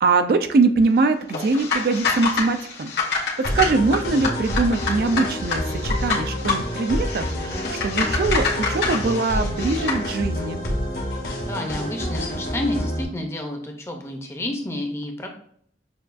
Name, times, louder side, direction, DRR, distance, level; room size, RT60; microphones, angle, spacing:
voice 1, 0.0-3.3 3.5-10.6, right 3 dB, 55° right, 8 dB, 0.3 m, -22 dB
sound 1, 1.3-10.0, left 4 dB, 75° left, 1.2 m, -28 dB
sound 2, 3.4-13.0, equal, 55° left, 0.9 m, -28 dB
voice 2, 11.5-15.3, left 1 dB, 15° left, 2 dB, 0.6 m, -29 dB
6.7 x 2.3 x 2.5 m, 0.63 s
head